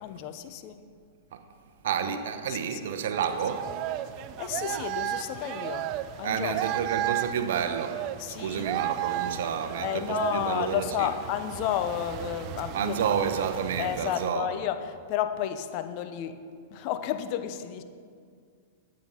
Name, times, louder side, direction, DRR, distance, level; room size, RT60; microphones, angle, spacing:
voice 1, 0.0-0.8 2.1-2.2 2.5-2.8 4.4-5.9 6.2-6.6 8.2-8.7 9.8-13.2 13.8-16.4 16.7-17.8, left 10 dB, 50° left, 0.8 m, -32 dB
voice 2, 1.8-3.7 6.2-11.1 12.7-14.5, right 7 dB, 70° right, 0.9 m, -30 dB
sound 1, 3.1-14.3, right 12 dB, 45° right, 0.5 m, -34 dB
10.5 x 8.7 x 5.7 m
hypercardioid pair, 115°, 0 cm